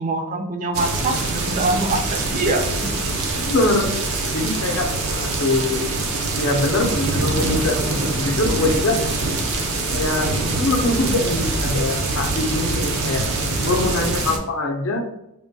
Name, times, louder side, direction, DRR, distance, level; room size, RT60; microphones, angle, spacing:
voice 1, 0.0-3.0, right 2 dB, 40° right, 5 dB, 0.4 m, -24 dB
sound 1, 0.7-14.4, right 2 dB, 90° right, 0.6 m, -24 dB
voice 2, 3.4-4.0 4.3-5.9 6.4-9.0 9.9-10.3 10.6-13.2 13.6-15.0, left 2 dB, 65° left, 3 dB, 0.5 m, -23 dB
3.5 x 2.1 x 2.7 m, 0.85 s
head